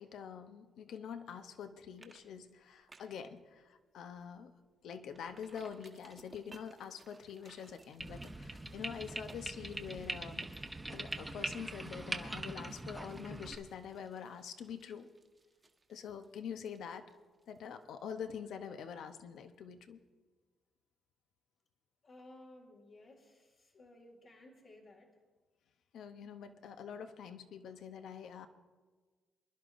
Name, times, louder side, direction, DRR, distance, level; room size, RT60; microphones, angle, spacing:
voice 1, 0.0-4.5 4.8-10.5 10.9-15.1 15.9-17.1 17.5-20.0 25.9-28.5, left 7 dB, 80° left, 8 dB, 0.8 m, -45 dB
sound 1, 1.4-1.7 2.0-2.2 2.5-3.3 3.7-3.8 4.2-4.3 5.1-18.7 19.0-19.1, right 3 dB, 30° right, 1.2 m, -62 dB
sound 2, 8.0-13.6, right 1 dB, 10° right, 0.9 m, -42 dB
voice 2, 22.0-25.1, left 1 dB, 60° left, -4 dB, 2.0 m, -57 dB
25.5 x 11.0 x 2.6 m, 1.4 s
cardioid pair, 80°, 0 cm